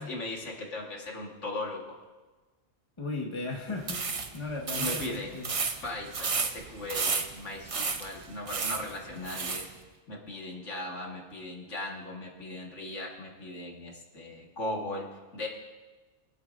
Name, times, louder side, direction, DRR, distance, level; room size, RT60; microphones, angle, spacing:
voice 1, 0.0-2.0 4.7-5.4 5.8-9.6 10.1-15.1 15.3-15.5, left 2 dB, 70° left, -1 dB, 2.0 m, -38 dB
voice 2, 3.0-4.0 4.3-5.5, left 3 dB, 25° left, -1 dB, 1.4 m, -36 dB
sound 1, 3.8-9.7, right 4 dB, 35° right, 0.6 m, -33 dB
24.0 x 9.4 x 2.5 m, 1.3 s
omnidirectional pair, 1.3 m